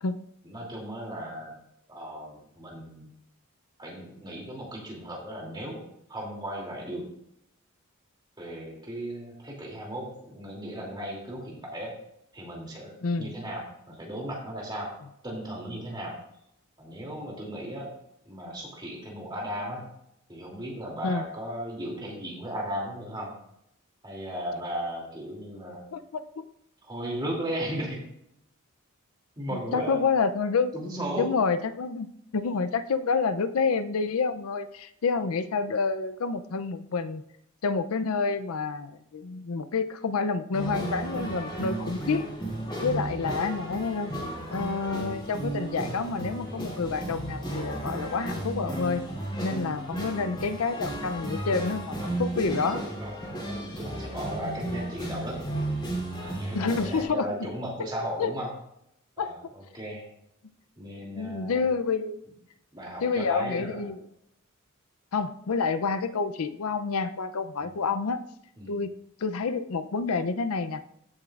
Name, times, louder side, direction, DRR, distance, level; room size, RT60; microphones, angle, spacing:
voice 1, 0.4-1.5 1.9-3.1 3.8-7.1 8.4-11.9 12.3-12.9 13.2-14.9 15.2-16.2 16.8-17.9 18.2-19.8 20.3-23.3 24.0-25.8 26.8-28.0 29.4-30.0 30.7-31.3 52.9-53.1 53.4-55.4 56.1-58.5 59.2-60.1 60.8-61.7 62.7-63.9 67.6-67.8 68.6-68.8, equal, 20° right, -3 dB, 2.7 m, -36 dB
voice 2, 13.0-13.3 21.0-21.2 25.9-26.4 29.5-30.7 31.2-32.1 32.3-37.2 37.6-42.3 42.8-44.1 44.5-49.0 49.3-52.8 54.4-54.6 56.5-57.3 58.2-58.3 59.2-59.3 61.1-62.2 63.0-64.0 65.1-68.2 68.7-68.9 69.2-70.8, left 4 dB, 90° left, 12 dB, 0.5 m, -28 dB
sound 1, 40.5-57.0, right 1 dB, 25° left, 2.9 m, -34 dB
14.5 x 7.1 x 2.5 m, 0.77 s
head